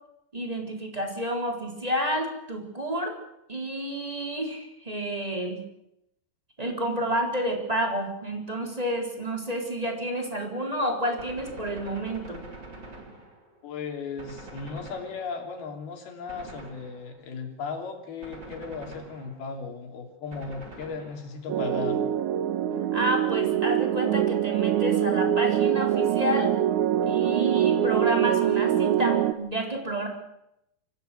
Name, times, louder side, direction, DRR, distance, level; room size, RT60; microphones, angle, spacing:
voice 1, 0.3-3.1 3.5-5.6 6.6-12.4 22.9-26.5 27.0-30.1, equal, 10° right, 2 dB, 3.3 m, -30 dB
Gunshot gunfire, 11.2-13.7 14.2-15.6 16.3-17.3 18.2-19.6 20.3-21.5, right 2 dB, 25° right, 3.7 m, -45 dB
voice 2, 13.6-22.0, left 5 dB, 60° left, 4 dB, 4.7 m, -36 dB
sound 1, 21.5-29.3, right 11 dB, 90° right, 1.6 m, -24 dB
24.5 x 16.5 x 7.8 m, 0.80 s
omnidirectional pair, 5.1 m